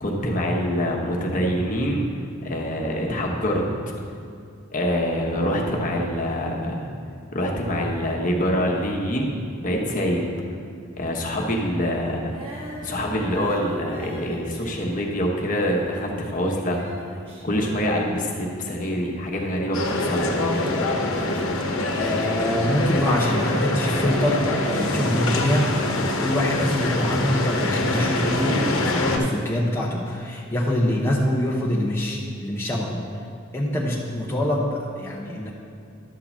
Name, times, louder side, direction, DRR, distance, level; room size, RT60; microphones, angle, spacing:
voice 1, 0.0-2.0 2.4-3.6 4.7-6.9 7.3-10.3 11.0-12.4 12.8-16.8 17.4-20.4, equal, 40° left, -1 dB, 1.2 m, -25 dB
Female singing, 12.3-16.1 16.4-18.5, equal, 30° right, 1.5 m, -40 dB
sound 1, 19.7-29.2, left 2 dB, 80° left, 1.0 m, -25 dB
voice 2, 22.0-25.7 25.9-33.0 33.5-35.5, left 1 dB, 10° left, -5 dB, 0.7 m, -24 dB
11.5 x 3.9 x 7.2 m, 2.4 s
head